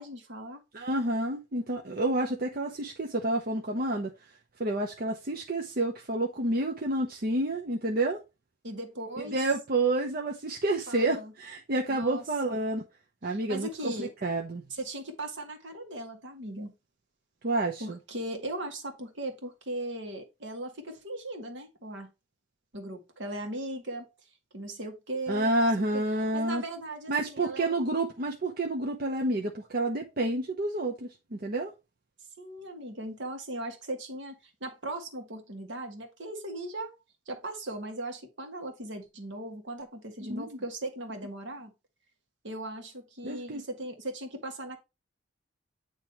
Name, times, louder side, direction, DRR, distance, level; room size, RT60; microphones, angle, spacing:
voice 1, 0.0-0.6 8.6-9.4 10.9-11.3 11.9-12.6 13.2-14.1 14.7-16.7 17.8-22.1 22.7-24.1 24.5-26.0 26.3-27.9 32.4-36.9 37.3-41.7 42.4-44.8, right 1 dB, 75° right, 1.6 m, -38 dB
voice 2, 0.7-4.1 4.6-8.2 9.2-12.8 13.2-14.6 17.4-18.0 25.3-26.6 27.1-31.7 40.3-40.6 43.2-43.6, right 2 dB, 50° right, 0.8 m, -29 dB
8.8 x 3.1 x 4.5 m
head